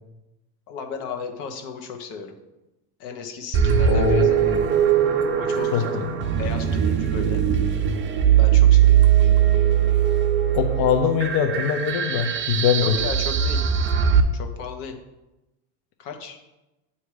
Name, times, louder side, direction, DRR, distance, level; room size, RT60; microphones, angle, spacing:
voice 1, 0.7-2.3 3.0-4.4 5.3-6.0 6.4-7.4 8.3-9.1 12.8-13.6 14.3-15.0 16.0-16.4, left 5 dB, 75° left, 4 dB, 1.2 m, -35 dB
sound 1, 3.5-14.2, right 9 dB, 25° right, 0.5 m, -20 dB
voice 2, 3.9-4.3 5.7-6.1 10.5-13.0, left 8 dB, 55° left, 5 dB, 0.7 m, -22 dB
8.4 x 2.8 x 4.7 m, 1.0 s
supercardioid pair, 105°, 48 cm